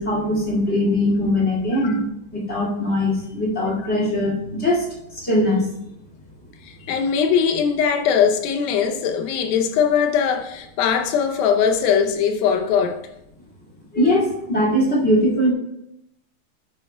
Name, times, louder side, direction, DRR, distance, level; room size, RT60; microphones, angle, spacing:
voice 1, 0.0-2.0 2.3-4.9 5.1-5.7 13.9-15.5, left 1 dB, 25° left, 1.8 m, -20 dB
voice 2, 6.6-13.0, left 7 dB, 75° left, 2.4 m, -20 dB
12.5 x 8.5 x 2.3 m
omnidirectional pair, 4.5 m